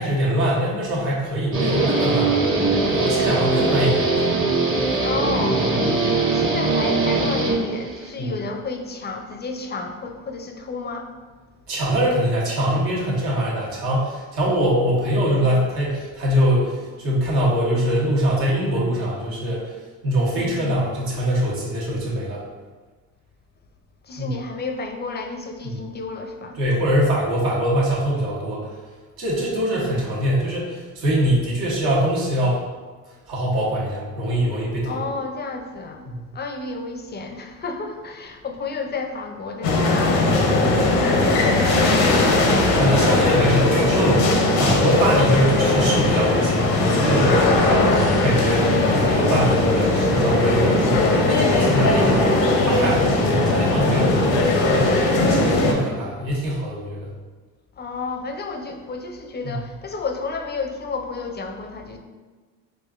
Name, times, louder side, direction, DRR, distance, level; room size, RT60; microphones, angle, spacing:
voice 1, 0.0-2.6 2.9-4.2 8.2-8.3 11.7-19.7 20.0-22.4 24.2-24.3 25.6-25.8 26.6-28.7 29.2-32.6 33.3-35.0 36.2-36.3 42.8-57.1 59.4-59.5, equal, 75° right, -5 dB, 1.3 m, -23 dB
Guitar, 1.5-8.1, right 3 dB, 30° right, 0.8 m, -21 dB
voice 2, 5.0-5.7 6.3-11.2 20.3-20.8 24.0-26.6 34.9-36.1 36.3-42.7 57.8-62.0, left 4 dB, 25° left, 4 dB, 0.4 m, -32 dB
sound 1, 39.6-55.7, left 2 dB, 85° left, 0.7 m, -19 dB
4.4 x 2.6 x 2.4 m, 1.4 s
supercardioid pair, 75°, 39 cm